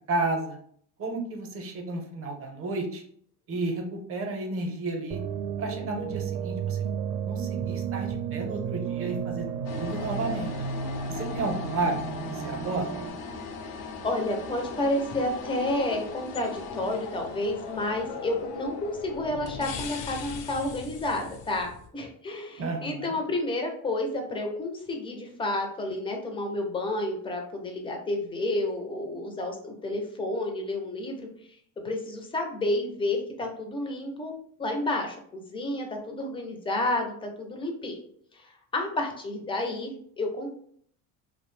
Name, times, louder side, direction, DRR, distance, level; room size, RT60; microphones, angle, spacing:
voice 1, 0.1-0.6 1.0-3.0 3.5-5.2 5.6-6.8 7.2-10.5 11.1-12.0 12.2-12.8 22.6-23.2, right 2 dB, 35° right, 3 dB, 0.6 m, -32 dB
sound 1, 5.1-13.1, right 7 dB, 80° right, 0.5 m, -33 dB
sound 2, 9.6-21.9, left 5 dB, 80° left, 0.6 m, -39 dB
voice 2, 14.0-31.3 31.8-34.3 34.6-38.0 38.3-40.5, left 1 dB, 15° left, 3 dB, 0.4 m, -30 dB
2.6 x 2.0 x 3.1 m, 0.62 s
cardioid pair, 125°, 38 cm